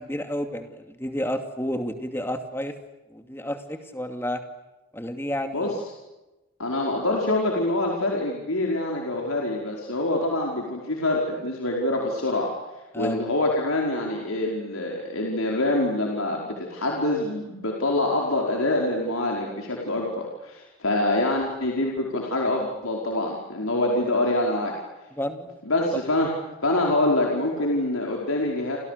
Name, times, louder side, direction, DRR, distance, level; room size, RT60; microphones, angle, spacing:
voice 1, 0.0-2.7 3.1-4.4 4.9-5.7 12.9-13.2 25.1-25.6, equal, 10° left, 7 dB, 2.5 m, -31 dB
voice 2, 6.6-12.6 13.0-24.7 25.6-26.3 26.6-28.8, left 2 dB, 85° left, -1 dB, 5.0 m, -25 dB
30.0 x 28.0 x 6.8 m, 1.0 s
head